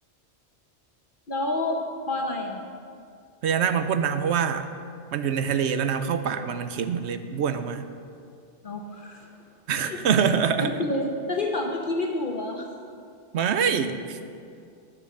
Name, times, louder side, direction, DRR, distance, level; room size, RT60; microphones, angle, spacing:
voice 1, 1.3-2.6 8.6-9.3 9.8-10.0 10.6-12.7, left 2 dB, 50° left, 2 dB, 1.0 m, -29 dB
voice 2, 3.4-4.7 5.1-7.8 9.7-10.7 13.3-14.2, right 7 dB, 75° right, 10 dB, 1.0 m, -25 dB
10.0 x 6.9 x 7.6 m, 2.3 s
omnidirectional pair, 1.2 m